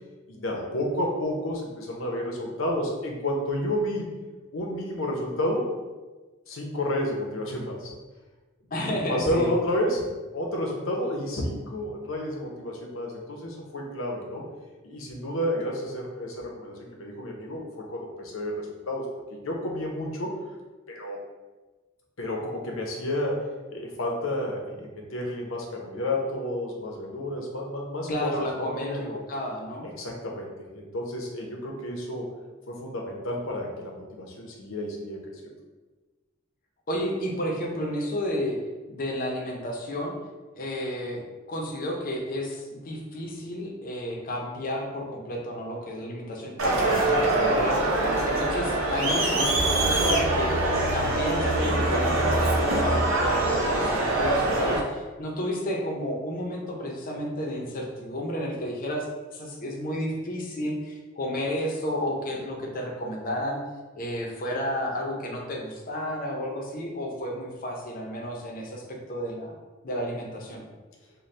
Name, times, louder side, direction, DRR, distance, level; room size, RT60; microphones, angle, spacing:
voice 1, 0.3-4.1 4.5-5.7 6.5-7.9 9.1-10.1 10.3-14.5 14.8-19.0 19.3-20.4 20.9-21.2 22.2-29.0 29.8-32.3 32.7-35.5 46.7-47.0, left 1 dB, 85° left, 0 dB, 0.8 m, -31 dB
voice 2, 8.7-9.5 28.1-29.9 36.9-38.6 38.9-40.1 40.6-41.2 41.5-50.6 50.9-59.1 59.3-63.6 63.9-69.5 69.8-70.6, equal, 45° left, 0 dB, 0.6 m, -31 dB
Crowd, 46.6-54.8, right 2 dB, 80° right, 0.7 m, -24 dB
4.1 x 2.2 x 3.3 m, 1.2 s
head